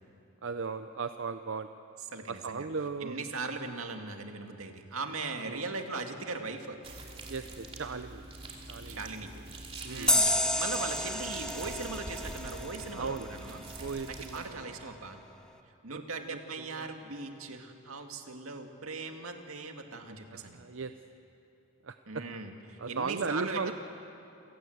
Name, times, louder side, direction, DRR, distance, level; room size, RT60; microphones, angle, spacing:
voice 1, 0.4-1.7 2.3-3.2 5.4-5.6 7.3-8.2 8.7-9.0 9.8-10.2 12.9-13.3 13.8-14.7 15.9-17.0 20.3-20.9 21.8-22.2 22.8-23.7, right 4 dB, 60° right, 9 dB, 0.6 m, -37 dB
voice 2, 2.1-2.7 3.0-6.8 8.9-9.3 9.9-13.6 14.1-15.2 15.8-20.6 22.1-23.7, right 3 dB, 80° right, 4 dB, 2.1 m, -39 dB
sound 1, 6.8-14.5, right 2 dB, 25° right, 2.7 m, -45 dB
sound 2, 10.1-13.4, left 1 dB, 5° left, 0.8 m, -30 dB
28.5 x 18.0 x 7.9 m, 2.9 s
head